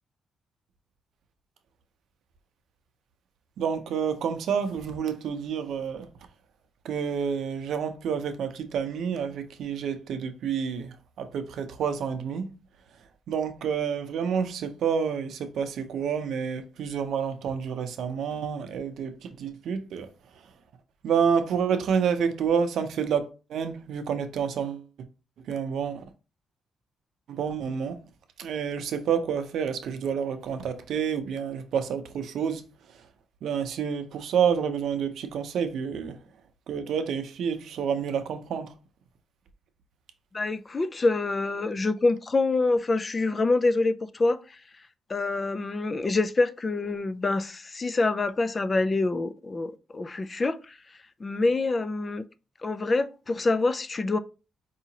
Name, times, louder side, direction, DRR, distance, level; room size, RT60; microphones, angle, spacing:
voice 1, 3.6-6.1 6.8-12.5 13.3-20.4 21.0-24.8 25.5-26.1 27.3-28.0 28.4-33.1 33.4-36.2 36.7-38.7, right 7 dB, 70° right, 0.6 m, -29 dB
voice 2, 40.3-44.6 45.1-50.8 51.2-52.2 52.6-54.2, left 3 dB, 25° left, 0.3 m, -26 dB
4.8 x 2.8 x 2.8 m
cardioid pair, 120°, 0 cm